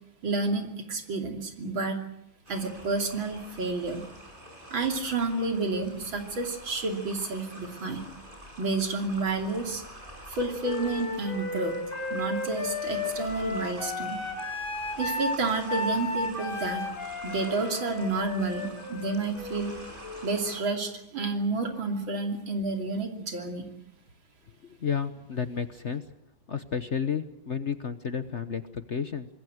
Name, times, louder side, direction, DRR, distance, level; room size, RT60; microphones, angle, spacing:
voice 1, 0.2-2.0 2.5-4.0 4.7-8.0 8.6-9.8 10.3-11.7 12.1-14.2 15.0-16.9 17.2-19.8 20.2-23.7, right 3 dB, 75° right, 3 dB, 3.6 m, -30 dB
sound 1, 2.5-20.6, right 1 dB, 25° right, 6.2 m, -47 dB
Wind instrument woodwind instrument, 10.6-20.4, left 3 dB, 25° left, 4.6 m, -34 dB
voice 2, 24.6-26.0 26.5-29.3, left 7 dB, 45° left, 10 dB, 1.1 m, -32 dB
26.0 x 20.5 x 7.9 m, 0.80 s
omnidirectional pair, 2.2 m